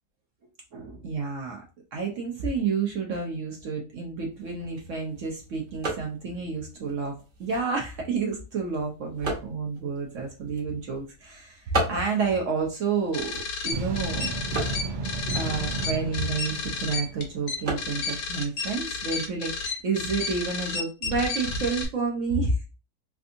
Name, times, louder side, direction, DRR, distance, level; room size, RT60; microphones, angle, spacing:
voice 1, 0.7-1.6 1.9-14.3 15.3-22.6, right 4 dB, 60° right, 0 dB, 0.9 m, -30 dB
sound 1, 4.3-19.8, right 2 dB, 35° right, 1.0 m, -38 dB
sound 2, 13.1-21.8, left 4 dB, 75° left, 1.4 m, -32 dB
sound 3, 13.7-17.7, right 3 dB, 85° right, 0.5 m, -33 dB
3.4 x 2.6 x 2.5 m, 0.31 s
omnidirectional pair, 1.8 m